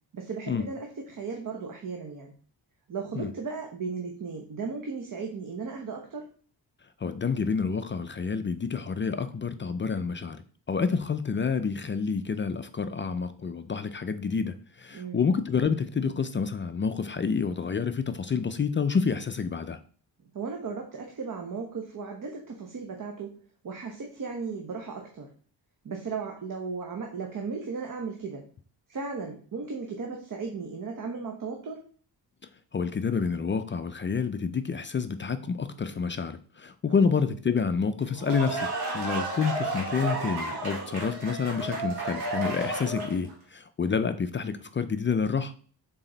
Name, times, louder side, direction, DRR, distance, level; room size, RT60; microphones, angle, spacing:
voice 1, 0.1-2.3 2.9-6.3 14.9-15.3 20.2-23.4 23.6-25.3 25.8-28.4 28.9-31.8 36.9-37.2, right 5 dB, 50° right, 1.0 m, -36 dB
voice 2, 7.0-10.4 10.7-19.8 32.7-38.7 38.9-45.5, left 5 dB, 30° left, 0.4 m, -28 dB
sound 1, 38.0-43.3, right 2 dB, 65° right, 1.9 m, -32 dB
6.1 x 4.1 x 3.9 m
wide cardioid pair, 125°, 42 cm